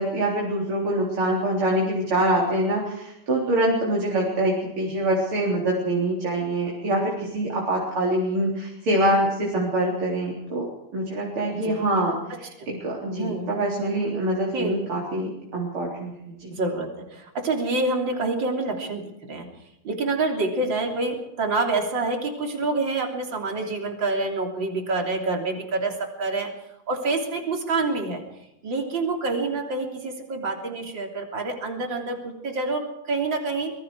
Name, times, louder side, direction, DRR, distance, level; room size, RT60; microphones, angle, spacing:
voice 1, 0.0-16.5, right 1 dB, 80° right, -3 dB, 4.7 m, -25 dB
voice 2, 13.1-13.6 14.5-14.8 16.5-19.5 19.8-26.5 26.9-28.2 28.6-33.7, right 3 dB, 60° right, 2 dB, 4.0 m, -27 dB
25.0 x 22.0 x 4.8 m, 0.88 s
omnidirectional pair, 2.3 m